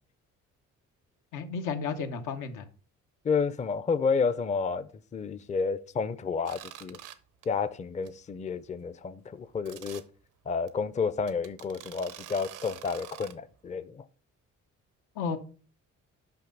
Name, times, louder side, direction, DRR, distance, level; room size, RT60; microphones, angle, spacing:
voice 1, 1.3-2.6 15.2-15.4, left 5 dB, 90° left, 1.0 m, -32 dB
voice 2, 3.2-7.0 7.5-10.0 10.5-14.0, left 5 dB, 25° left, 0.5 m, -30 dB
sound 1, 6.5-7.2 7.4-7.7 8.1-8.2 8.5-8.6 9.7-10.0 10.7-10.8 11.3-13.3, right 11 dB, 90° right, 0.8 m, -46 dB
5.9 x 5.7 x 5.2 m
cardioid pair, 90°, 30 cm